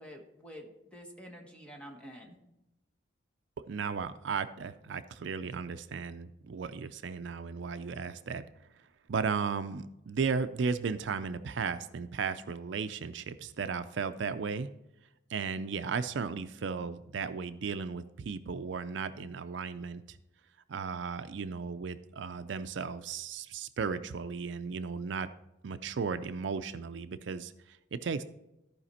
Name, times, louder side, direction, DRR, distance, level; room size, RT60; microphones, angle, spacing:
voice 1, 0.0-2.4, equal, 5° left, 1 dB, 1.3 m, -48 dB
voice 2, 3.7-8.4 9.1-14.7 15.3-20.2 20.7-25.3 25.6-28.2, right 5 dB, 65° right, 11 dB, 0.4 m, -35 dB
14.0 x 5.0 x 4.2 m, 0.89 s
head